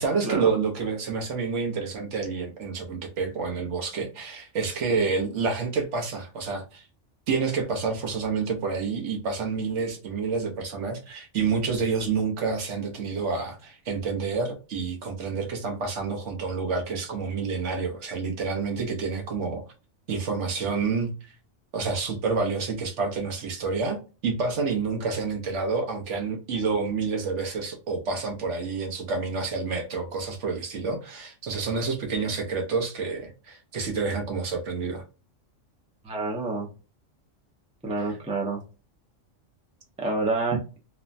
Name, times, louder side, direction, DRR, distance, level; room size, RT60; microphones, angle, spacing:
voice 1, 0.0-6.8 7.3-19.6 20.1-21.1 21.7-35.0, right 4 dB, 70° right, 1.1 m, -28 dB
voice 2, 36.0-36.7 37.8-38.6 40.0-40.6, right 3 dB, 10° right, 0.4 m, -28 dB
3.0 x 2.1 x 2.4 m
omnidirectional pair, 1.3 m